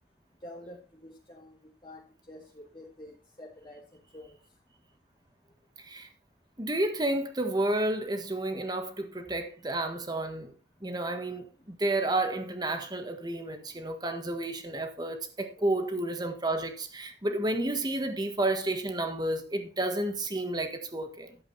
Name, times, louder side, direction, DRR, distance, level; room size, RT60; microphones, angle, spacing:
voice 1, 0.4-1.5 1.8-2.0 2.3-3.8 4.1-4.4 15.6-15.9, left 1 dB, 25° left, 1.5 m, -48 dB
voice 2, 5.8-6.1 6.6-10.5 10.8-21.4, right 1 dB, 25° right, 1.6 m, -31 dB
12.0 x 8.0 x 4.2 m
head